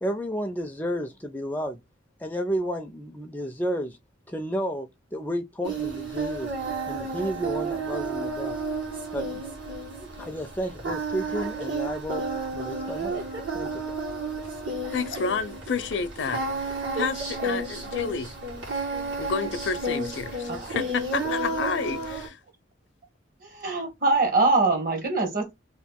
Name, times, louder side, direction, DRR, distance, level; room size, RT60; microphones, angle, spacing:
voice 1, 0.0-1.8 2.2-4.0 4.3-6.5 6.9-8.6 9.1-9.4 10.2-13.2 13.5-13.8, equal, 10° left, 0.4 m, -32 dB
Singing, 5.6-22.3, right 2 dB, 80° right, 1.6 m, -32 dB
voice 2, 14.9-18.3 19.2-22.4, left 5 dB, 70° left, 0.5 m, -30 dB
voice 3, 23.4-25.5, right 3 dB, 50° right, 1.1 m, -23 dB
2.9 x 2.4 x 3.4 m
head